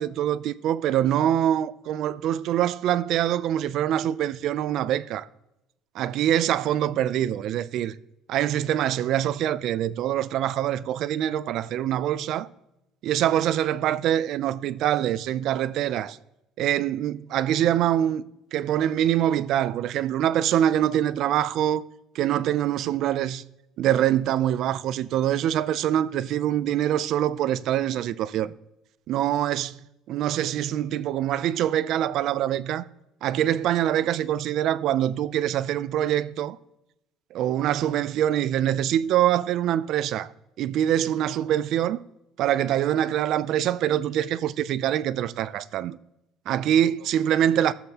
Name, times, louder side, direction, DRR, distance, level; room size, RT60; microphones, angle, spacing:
voice 1, 0.0-5.3 5.9-8.0 8.3-12.5 13.0-16.2 16.6-18.2 18.5-21.8 22.1-23.4 23.8-28.5 29.1-29.8 30.1-32.9 33.2-36.6 37.3-40.3 40.6-42.0 42.4-46.0 46.5-47.7, right 11 dB, 55° right, 0.4 m, -24 dB
15.0 x 7.3 x 2.9 m
cardioid pair, 150°, 0 cm